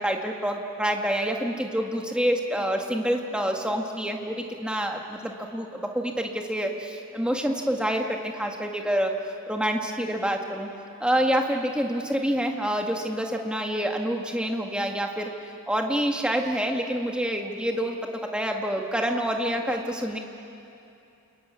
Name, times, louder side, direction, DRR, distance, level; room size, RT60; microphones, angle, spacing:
voice 1, 0.0-9.2 9.5-10.7 11.0-15.3 15.7-20.2, equal, 5° right, 2 dB, 1.8 m, -27 dB
28.0 x 22.5 x 9.4 m, 2.7 s
head